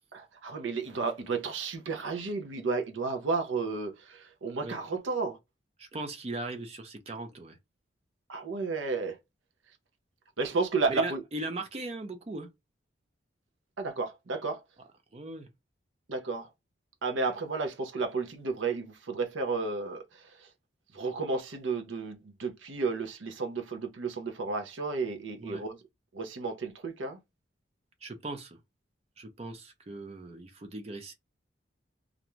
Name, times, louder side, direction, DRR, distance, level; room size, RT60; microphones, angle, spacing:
voice 1, 0.1-5.4 8.3-9.2 10.4-11.2 13.8-14.6 16.1-16.5 17.0-20.0 20.9-25.8 26.1-27.2, right 4 dB, 85° right, 0.6 m, -32 dB
voice 2, 5.8-7.6 10.9-12.5 15.1-15.5 25.4-25.6 28.0-28.6 29.2-31.1, right 2 dB, 30° right, 0.4 m, -39 dB
2.5 x 2.2 x 3.0 m
head